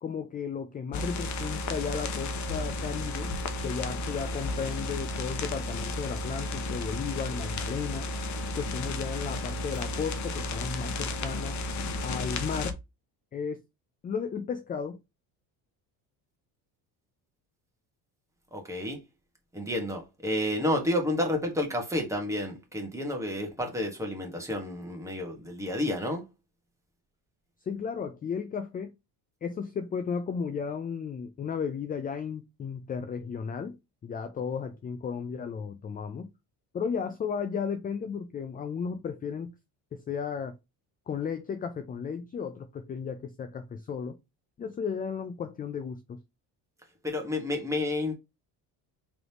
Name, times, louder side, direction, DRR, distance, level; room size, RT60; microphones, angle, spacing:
voice 1, 0.0-3.3 3.6-8.1 8.6-11.6 12.0-12.8 13.3-13.6 14.0-15.0 27.7-28.9 29.4-33.8 34.0-36.3 36.7-39.5 39.9-40.6 41.1-44.2 44.6-46.2, left 6 dB, 20° left, 0.4 m, -34 dB
sound 1, 0.9-12.7, left 2 dB, 45° left, 0.8 m, -33 dB
voice 2, 18.5-19.0 19.5-26.3 47.0-48.1, left 1 dB, 5° right, 1.5 m, -30 dB
3.8 x 3.5 x 2.9 m
cardioid pair, 125°, 41 cm